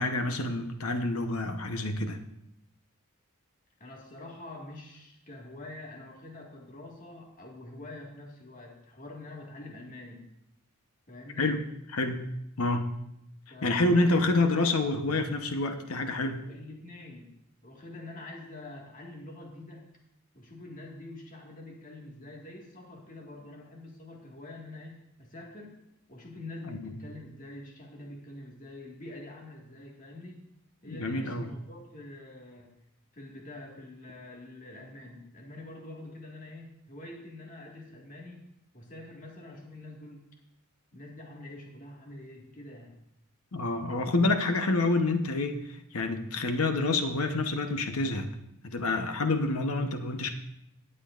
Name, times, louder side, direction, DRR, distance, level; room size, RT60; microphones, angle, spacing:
voice 1, 0.0-2.2 11.4-11.6 11.9-12.3 12.6-12.9 13.6-16.5 26.6-27.0 30.9-31.5 43.5-48.3 48.6-50.3, left 2 dB, 80° left, 6 dB, 1.0 m, -28 dB
voice 2, 3.8-10.3 11.1-11.5 13.5-14.9 16.5-17.4 17.6-19.8 20.3-25.8 26.1-30.4 30.8-32.7 33.1-38.4 38.7-40.3 40.9-43.0, left 2 dB, 40° left, -1 dB, 1.8 m, -46 dB
18.0 x 7.5 x 2.5 m, 0.80 s
head